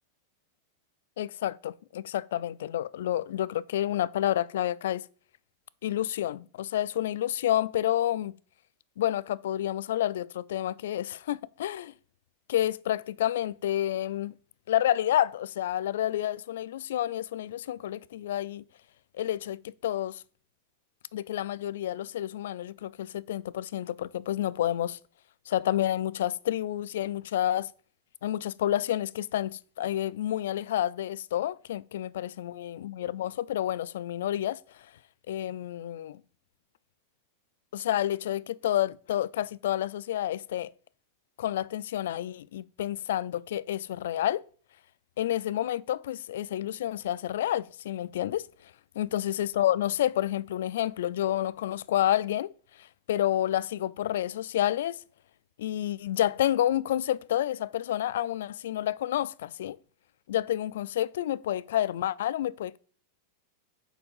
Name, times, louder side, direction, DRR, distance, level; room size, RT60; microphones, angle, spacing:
voice 1, 1.2-5.0 5.8-8.3 9.0-11.9 12.5-14.3 14.7-18.6 19.2-20.2 21.1-25.0 25.5-27.7 28.2-34.6 35.3-36.2 37.7-40.7 41.4-44.4 45.2-48.5 49.0-52.5 52.8-55.0 55.6-59.8 60.3-62.8, left 12 dB, 75° left, 0.3 m, -29 dB
7.0 x 4.8 x 5.4 m
supercardioid pair, 175°, 0 cm